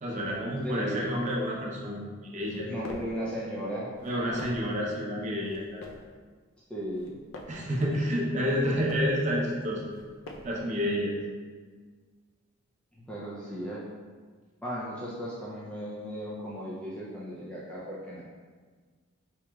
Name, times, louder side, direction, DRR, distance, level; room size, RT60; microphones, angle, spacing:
voice 1, 0.0-2.0 2.3-2.7 4.0-5.8 7.5-9.8 10.4-11.2, equal, 35° right, -3 dB, 0.6 m, -29 dB
voice 2, 0.6-1.1 2.6-3.9 6.7-7.1 13.1-13.8 14.6-18.2, equal, 5° left, -8 dB, 0.4 m, -36 dB
sound 1, 2.4-3.2 3.9-4.8 5.4-6.1 6.8-7.7 8.4-9.2 9.9-10.7, left 2 dB, 80° left, 0.5 m, -46 dB
4.5 x 2.9 x 2.3 m, 1.5 s
head